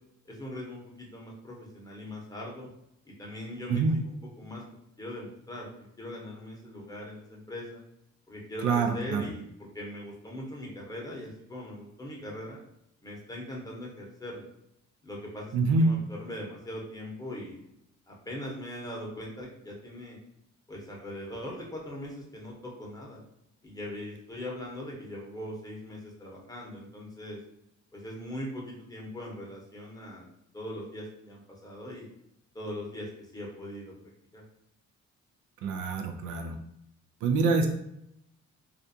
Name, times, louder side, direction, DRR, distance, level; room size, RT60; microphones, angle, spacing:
voice 1, 0.3-2.7 3.0-3.8 4.4-4.6 5.0-7.8 8.3-12.6 13.0-14.5 15.0-17.6 18.1-20.2 20.7-23.2 23.6-27.4 27.9-30.3 30.5-32.1 32.5-33.9 34.3-34.4, left 1 dB, 10° left, -3 dB, 0.8 m, -40 dB
voice 2, 8.6-9.3 15.5-15.9 35.6-36.6 37.2-37.7, right 3 dB, 80° right, 4 dB, 0.5 m, -25 dB
2.4 x 2.2 x 2.6 m, 0.79 s
cardioid pair, 90°, 30 cm